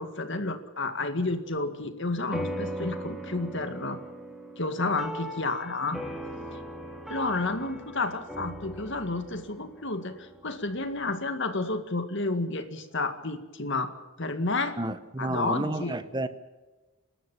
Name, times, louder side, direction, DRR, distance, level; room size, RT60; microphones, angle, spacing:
voice 1, 0.0-4.0 4.6-6.0 7.1-13.9 14.2-14.8 15.2-16.0, left 2 dB, 60° left, 2.1 m, -31 dB
sound 1, 2.3-11.0, equal, ahead, 2.8 m, -39 dB
voice 2, 14.8-16.3, right 1 dB, 20° right, 1.0 m, -31 dB
30.0 x 13.0 x 8.6 m
head